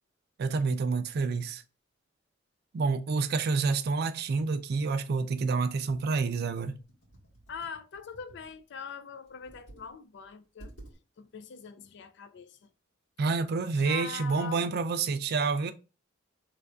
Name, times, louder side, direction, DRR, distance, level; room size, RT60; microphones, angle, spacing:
voice 1, 0.4-1.6 2.7-6.8 13.2-15.7, right 4 dB, 55° right, 0.4 m, -28 dB
Computer keyboard, 5.9-8.6 9.3-9.9 10.2-10.3 10.6-11.0, right 1 dB, 85° left, 2.0 m, -52 dB
voice 2, 7.5-10.7 11.2-12.7 13.8-14.7, left 6 dB, 65° left, 0.4 m, -42 dB
3.2 x 2.5 x 3.4 m
head